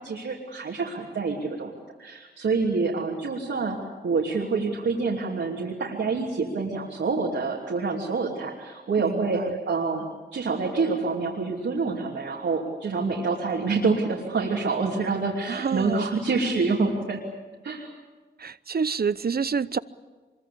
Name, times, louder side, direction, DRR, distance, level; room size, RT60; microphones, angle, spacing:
voice 1, 0.0-1.7 2.0-3.8 4.0-10.1 10.3-17.2 17.6-17.9, right 4 dB, 90° right, 2.9 m, -27 dB
voice 2, 9.0-9.5 15.5-16.0 18.4-19.8, right 6 dB, 55° right, 0.8 m, -28 dB
25.0 x 23.0 x 8.6 m
cardioid pair, 45°, 19 cm